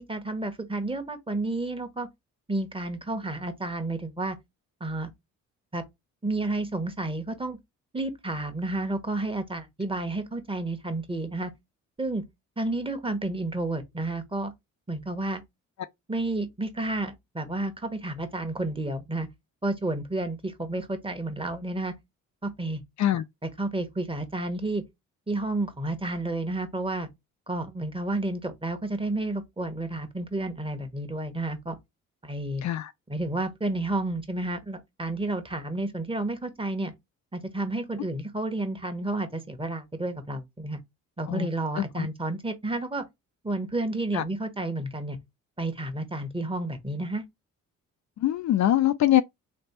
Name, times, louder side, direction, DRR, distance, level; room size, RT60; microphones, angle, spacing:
voice 1, 0.0-2.1 2.5-4.4 4.8-5.1 5.7-5.8 6.2-7.6 7.9-11.5 12.0-12.2 12.6-14.5 14.9-15.4 16.1-19.3 19.6-21.9 22.4-22.8 23.1-23.2 23.6-24.8 25.3-27.1 27.5-31.8 32.2-32.6 33.1-36.9 37.3-40.8 41.2-43.0 43.4-45.2 45.6-47.2, right 2 dB, 15° right, 1.3 m, -31 dB
voice 2, 41.8-42.1 44.1-44.2 48.2-49.2, left 12 dB, 55° left, 0.5 m, -23 dB
3.3 x 2.8 x 4.2 m
supercardioid pair, 65°, 34 cm